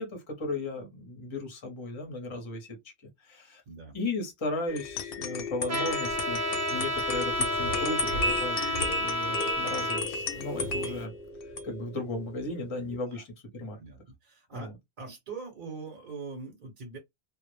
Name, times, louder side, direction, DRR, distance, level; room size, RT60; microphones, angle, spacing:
voice 1, 0.0-2.8 3.2-3.6 3.9-6.4 6.7-11.1 11.6-13.8 14.5-14.7, left 2 dB, 30° left, 0.7 m, -36 dB
sound 1, 4.7-13.0, left 3 dB, 65° left, 0.7 m, -34 dB
Trumpet, 5.7-10.0, equal, 25° right, 0.4 m, -31 dB
sound 2, 5.9-11.1, right 2 dB, 85° right, 0.9 m, -43 dB
voice 2, 13.8-14.7 15.0-17.0, right 4 dB, 55° right, 0.8 m, -42 dB
2.0 x 2.0 x 3.0 m
omnidirectional pair, 1.1 m